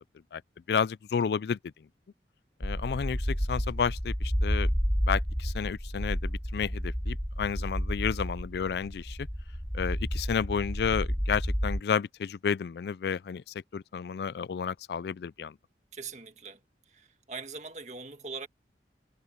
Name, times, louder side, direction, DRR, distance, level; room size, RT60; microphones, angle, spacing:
voice 1, 0.7-1.6 2.6-4.7 5.0-9.3 9.7-13.4 13.7-15.5, left 6 dB, 70° left, 0.3 m, -31 dB
sound 1, 2.6-11.8, equal, ahead, 0.4 m, -31 dB
voice 2, 15.9-16.6 16.9-18.5, right 4 dB, 40° right, 1.9 m, -41 dB
head